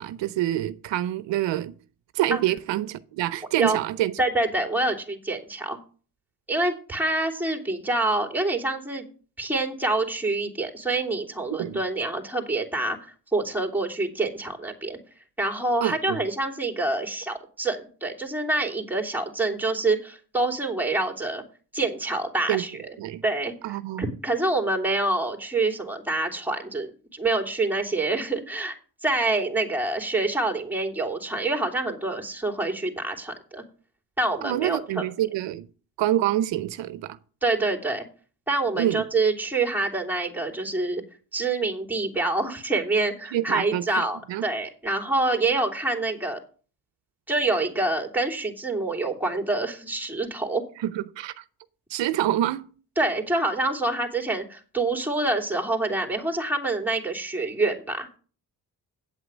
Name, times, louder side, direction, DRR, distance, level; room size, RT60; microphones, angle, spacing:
voice 1, 0.0-1.7 2.1-4.1 11.6-11.8 15.8-16.2 22.5-22.6 23.0-23.2 23.6-24.1 34.4-35.7 36.0-37.2 38.8-39.0 43.3-44.4 50.8-51.4 51.9-52.7, right 13 dB, 75° right, 0.7 m, -26 dB
voice 2, 4.2-5.8 6.5-9.1 9.4-13.0 13.3-15.0 15.4-21.4 21.7-22.9 23.2-28.8 29.0-33.6 34.2-35.0 37.4-38.0 38.5-41.0 41.3-46.4 47.3-50.6 53.0-58.2, right 2 dB, 5° right, 3.0 m, -26 dB
8.9 x 7.9 x 6.2 m
supercardioid pair, 70°, 44 cm